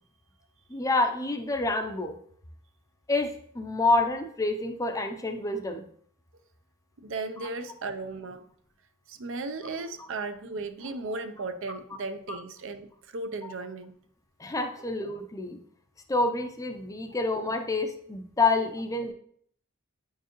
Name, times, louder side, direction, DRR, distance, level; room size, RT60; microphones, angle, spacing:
voice 1, 0.7-2.2 3.1-5.9 7.4-7.5 12.3-12.4 13.4-13.5 14.4-15.6 16.1-19.1, left 3 dB, 15° left, 6 dB, 0.5 m, -28 dB
voice 2, 7.0-8.5 9.1-12.9 13.1-13.9, right 3 dB, 65° right, 9 dB, 0.6 m, -36 dB
8.9 x 4.6 x 3.0 m, 0.63 s
head